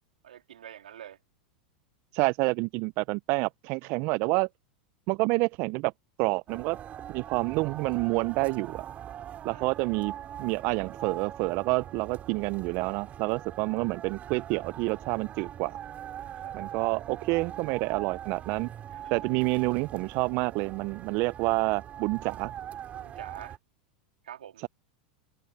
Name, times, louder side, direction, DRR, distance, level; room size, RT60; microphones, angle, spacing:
voice 1, 0.2-1.2 9.5-9.6 16.2-16.6 18.9-19.1 22.9-23.6 24.2-24.6, right 10 dB, 80° right, 3.2 m, -46 dB
voice 2, 2.1-4.5 5.1-5.9 6.2-6.8 7.1-8.9 9.4-15.8 16.5-18.7 19.1-22.5, right 26 dB, 50° right, 0.5 m, -28 dB
sound 1, 6.5-23.6, right 10 dB, 35° right, 5.8 m, -42 dB
hypercardioid pair, 100°, 4 cm